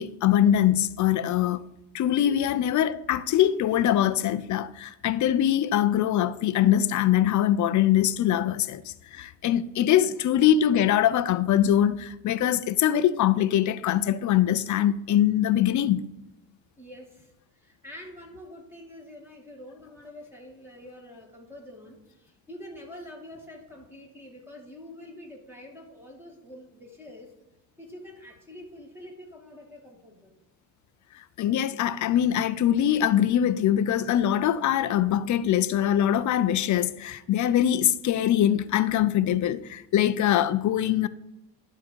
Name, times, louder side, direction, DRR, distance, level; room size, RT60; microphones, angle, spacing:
voice 1, 0.0-1.6 1.9-16.0 31.4-41.1, left 11 dB, 40° left, 0.5 m, -23 dB
voice 2, 2.2-2.5 9.8-10.0 16.8-27.3 27.8-30.4, left 1 dB, 5° right, 2.3 m, -46 dB
11.0 x 3.8 x 4.6 m
supercardioid pair, 85°, 47 cm